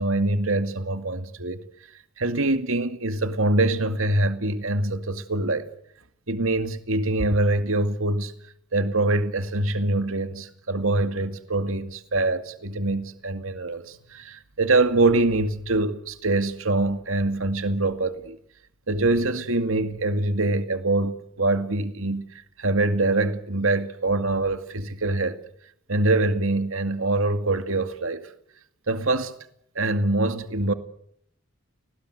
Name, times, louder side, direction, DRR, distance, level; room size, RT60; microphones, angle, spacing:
voice 1, 0.0-1.6 2.2-5.7 6.3-8.3 8.7-18.4 18.9-25.4 25.9-28.3 28.9-29.3 29.8-30.7, right 2 dB, 75° right, 2.2 m, -24 dB
29.0 x 19.5 x 8.1 m
head